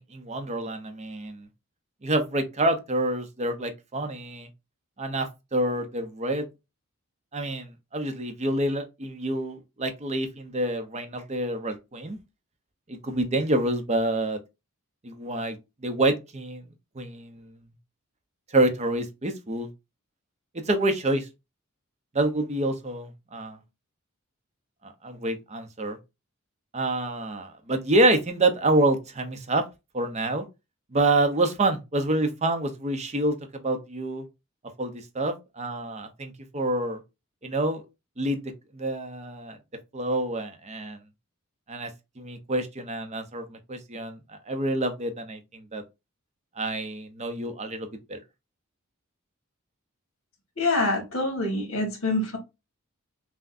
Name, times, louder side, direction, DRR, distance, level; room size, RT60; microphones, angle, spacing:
voice 1, 0.0-1.5 2.0-4.5 5.0-6.5 7.3-12.2 12.9-14.4 15.0-15.6 15.8-16.6 16.9-17.5 18.5-19.7 20.7-21.3 22.1-23.6 24.8-26.0 26.7-29.6 29.9-30.4 30.9-34.2 34.8-37.0 37.4-37.8 38.2-38.4 38.7-39.6 39.9-41.0 41.7-41.9 42.2-45.8 46.6-48.2, right 2 dB, 30° right, 0.7 m, -27 dB
voice 2, 50.6-52.4, left 2 dB, 65° left, 1.5 m, -26 dB
5.8 x 2.2 x 2.6 m
head